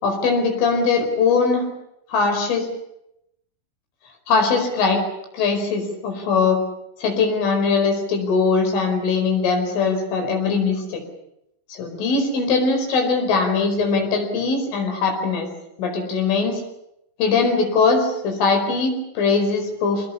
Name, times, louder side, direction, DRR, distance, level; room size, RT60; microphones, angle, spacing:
voice 1, 0.0-1.7 2.1-2.7 4.3-5.0 5.3-6.6 7.0-11.0 11.7-15.5 15.8-16.6 17.2-20.1, left 4 dB, 80° left, 5 dB, 7.3 m, -21 dB
25.5 x 20.0 x 8.7 m, 0.82 s
omnidirectional pair, 5.6 m